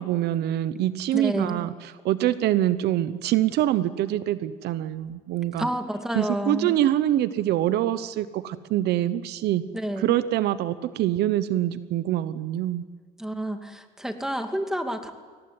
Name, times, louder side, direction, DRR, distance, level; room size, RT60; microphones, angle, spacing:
voice 1, 0.0-1.7 2.0-5.7 6.1-9.6 10.0-12.8, right 13 dB, 80° right, 14 dB, 1.0 m, -25 dB
voice 2, 1.1-1.6 5.6-6.8 9.7-10.1 13.2-15.1, equal, 5° right, 6 dB, 2.4 m, -29 dB
24.0 x 18.5 x 9.7 m, 1.5 s
cardioid pair, 110°, 17 cm